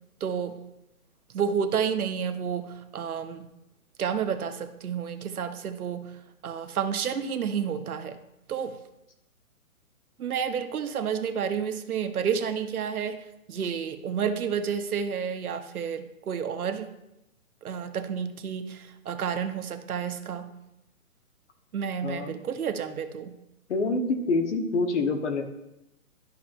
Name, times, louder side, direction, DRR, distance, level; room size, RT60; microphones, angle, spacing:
voice 1, 0.2-0.6 1.3-3.5 4.0-6.1 6.4-8.2 8.5-8.7 10.2-13.2 13.5-16.9 17.6-20.5 21.7-23.4, right 7 dB, 75° right, 7 dB, 1.0 m, -30 dB
voice 2, 22.0-22.4 23.7-25.4, left 3 dB, 50° left, 6 dB, 1.1 m, -26 dB
11.5 x 5.8 x 2.5 m, 0.89 s
hypercardioid pair, 170°, 44 cm